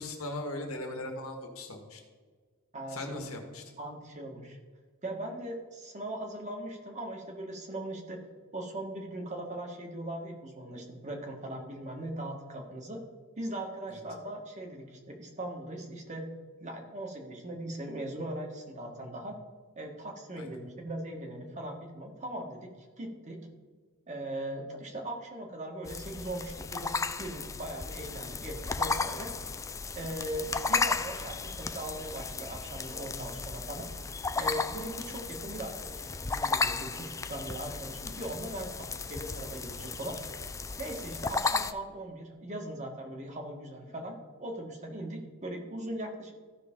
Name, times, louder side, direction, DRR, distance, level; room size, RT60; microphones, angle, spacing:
voice 1, 0.0-2.0 2.9-3.6 13.9-14.0 20.4-20.5, left 2 dB, 80° left, 3 dB, 1.7 m, -39 dB
voice 2, 2.7-3.2 3.8-4.6 5.0-8.2 8.5-13.0 13.3-16.3 16.6-19.4 19.7-23.4 24.1-26.9 27.2-29.3 29.9-33.9 34.3-40.2 40.8-46.4, right 1 dB, 35° right, 2 dB, 1.5 m, -39 dB
sound 1, 25.9-41.7, left 4 dB, 15° left, 0.3 m, -34 dB
14.5 x 5.8 x 3.7 m, 1.5 s
head